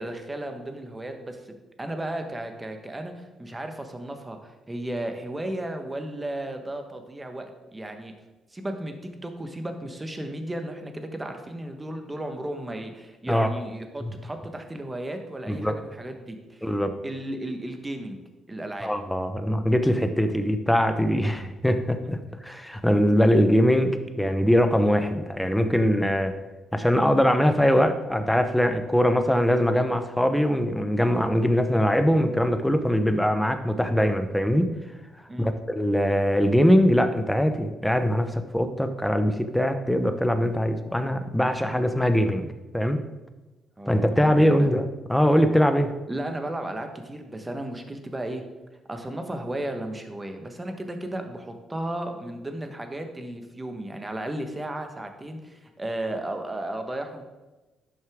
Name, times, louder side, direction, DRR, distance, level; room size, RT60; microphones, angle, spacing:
voice 1, 0.0-8.1 8.5-16.7 17.0-18.2 18.5-18.9 35.3-35.5 43.8-44.7 46.1-48.4 48.9-57.3, right 1 dB, 15° right, 5 dB, 1.3 m, -34 dB
voice 2, 16.6-16.9 18.8-26.4 26.7-34.7 35.4-42.5 42.7-43.0 43.9-45.9, equal, 5° left, 8 dB, 0.8 m, -22 dB
11.0 x 6.5 x 3.6 m, 1.1 s
cardioid pair, 90°, 0 cm